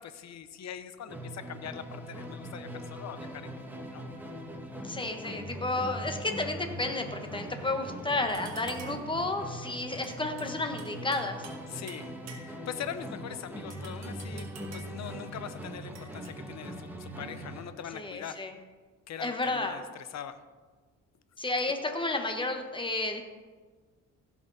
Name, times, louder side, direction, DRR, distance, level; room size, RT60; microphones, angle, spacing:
voice 1, 0.0-3.6 3.9-4.0 11.7-12.1 12.4-14.5 14.7-18.4 19.1-20.4, left 9 dB, 60° left, 11 dB, 0.9 m, -42 dB
Musical instrument, 1.1-17.8, equal, 5° right, 1.8 m, -41 dB
voice 2, 4.8-11.4 17.9-18.5 19.2-19.8 21.4-23.2, left 2 dB, 15° left, 5 dB, 1.4 m, -32 dB
sound 1, 8.3-9.1 10.0-11.6 11.9-12.7 13.7-15.0 15.9-16.3, right 5 dB, 60° right, 1.7 m, -49 dB
15.5 x 6.3 x 4.2 m, 1.4 s
cardioid pair, 90°, 30 cm